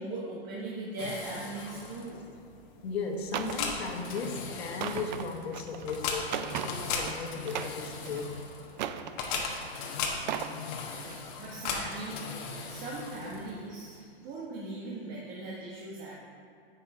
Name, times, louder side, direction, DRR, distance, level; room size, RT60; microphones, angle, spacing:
voice 1, 0.0-2.2 11.4-12.4 12.7-14.0 14.2-16.2, right 2 dB, 25° right, -6 dB, 1.4 m, -39 dB
sound 1, 1.0-13.7, left 5 dB, 30° left, 1.2 m, -38 dB
voice 2, 2.8-8.4 9.2-9.5, left 4 dB, 75° left, 1 dB, 1.6 m, -36 dB
sound 2, 3.3-3.6 4.0-4.3 4.7-7.1 7.4-8.2 8.7-9.6 10.1-10.6 11.0-11.2, right 9 dB, 45° right, 0.5 m, -37 dB
9.9 x 8.4 x 3.5 m, 2.3 s
hypercardioid pair, 150°, 31 cm